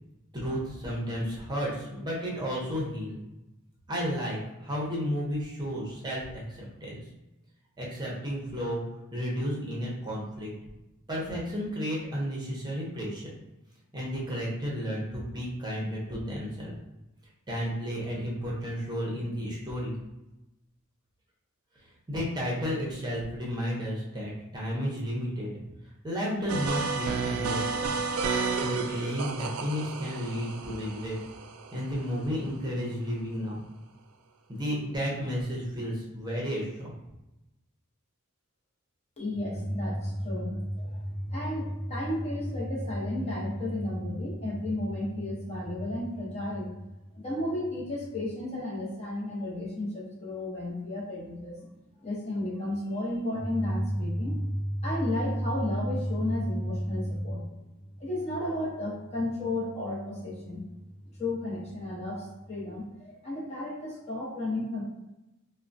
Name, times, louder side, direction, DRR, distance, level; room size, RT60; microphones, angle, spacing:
voice 1, 0.3-3.2 3.9-7.0 7.8-8.8 9.1-10.5 11.1-13.3 13.9-16.7 17.5-19.9 22.1-25.6 26.0-28.1 28.5-31.1 31.7-33.6 34.5-36.9, equal, 20° right, -5 dB, 0.7 m, -32 dB
sound 1, 26.5-32.3, right 4 dB, 90° right, 0.3 m, -32 dB
voice 2, 39.2-46.7 47.1-51.7 52.0-57.5 58.0-60.6 61.2-64.8, left 1 dB, 30° left, -5 dB, 0.7 m, -32 dB
3.6 x 2.1 x 2.5 m, 0.96 s
head